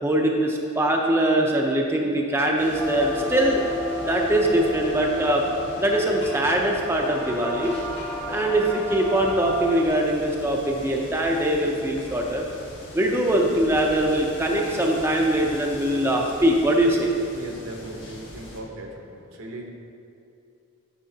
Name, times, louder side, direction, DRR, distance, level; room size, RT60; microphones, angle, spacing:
voice 1, 0.0-3.6 4.1-5.4 5.8-7.7 8.3-12.4 12.9-17.1, right 1 dB, 10° right, -1 dB, 0.5 m, -22 dB
sound 1, 2.6-18.6, left 1 dB, 60° left, 1.4 m, -41 dB
sound 2, 2.8-9.9, left 1 dB, 15° left, 1.0 m, -32 dB
voice 2, 17.3-19.7, right 1 dB, 80° right, 1 dB, 1.0 m, -38 dB
10.0 x 6.8 x 2.8 m, 2.7 s
head